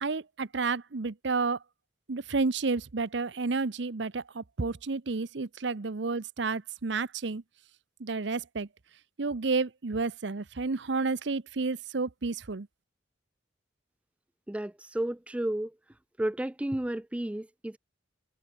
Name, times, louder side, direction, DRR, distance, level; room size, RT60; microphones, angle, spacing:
voice 1, 0.0-1.6 2.1-7.4 8.0-8.7 9.2-12.7, right 4 dB, 65° right, 0.8 m, -31 dB
voice 2, 14.5-15.8 16.2-17.8, right 1 dB, 5° right, 0.3 m, -32 dB
head